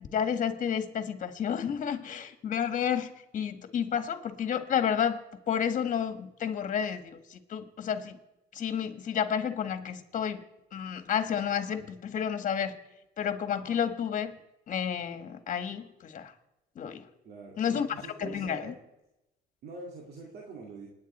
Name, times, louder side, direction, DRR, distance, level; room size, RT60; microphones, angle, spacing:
voice 1, 0.1-5.2 5.5-8.2 8.5-10.4 10.7-12.8 13.2-14.3 14.7-16.3 16.7-17.0 17.6-17.9 18.2-18.7, left 8 dB, 50° left, 8 dB, 1.7 m, -31 dB
voice 2, 17.2-18.8 19.6-20.9, right 3 dB, 70° right, -1 dB, 2.3 m, -44 dB
28.0 x 9.8 x 4.4 m, 0.94 s
cardioid pair, 110°, 17 cm